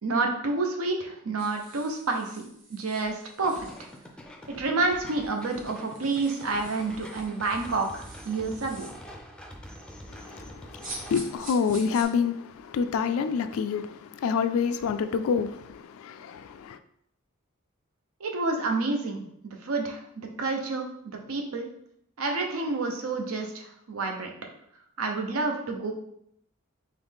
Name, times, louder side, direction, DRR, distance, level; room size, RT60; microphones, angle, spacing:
voice 1, 0.0-3.9 4.6-8.9 18.2-19.2 19.6-20.0 20.4-21.7 22.2-24.3 25.0-25.9, right 3 dB, 85° right, 0.8 m, -29 dB
sound 1, 1.4-4.1 4.8-4.9 5.1-9.1 10.8-12.0, right 2 dB, 40° right, 1.1 m, -46 dB
sound 2, 3.4-11.4, equal, 5° left, 0.4 m, -45 dB
voice 2, 10.1-16.8, left 6 dB, 70° left, 0.3 m, -28 dB
3.9 x 3.1 x 3.5 m
head